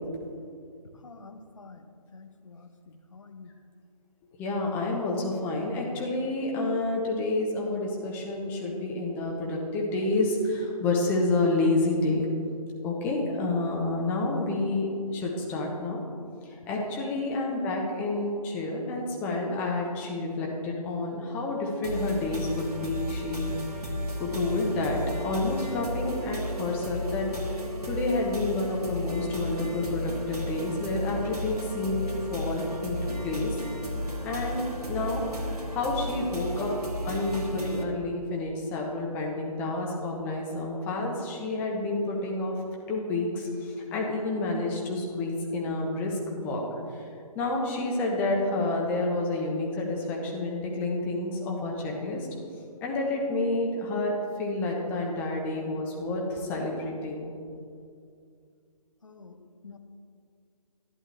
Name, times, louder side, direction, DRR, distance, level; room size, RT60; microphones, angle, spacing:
voice 1, 0.9-3.5 17.3-17.5 59.0-59.8, left 4 dB, 60° left, 8 dB, 0.9 m, -47 dB
voice 2, 4.4-12.3 12.8-16.0 16.4-23.5 23.8-23.9 24.2-33.6 34.2-35.2 35.7-36.7 37.0-42.5 42.9-46.6 46.9-47.0 47.3-52.3 52.8-57.3, left 2 dB, 10° left, -1 dB, 0.8 m, -29 dB
sound 1, 21.8-37.8, left 1 dB, 85° right, 1.4 m, -34 dB
11.0 x 10.5 x 3.3 m, 2.4 s
figure-of-eight pair, 145°, 19 cm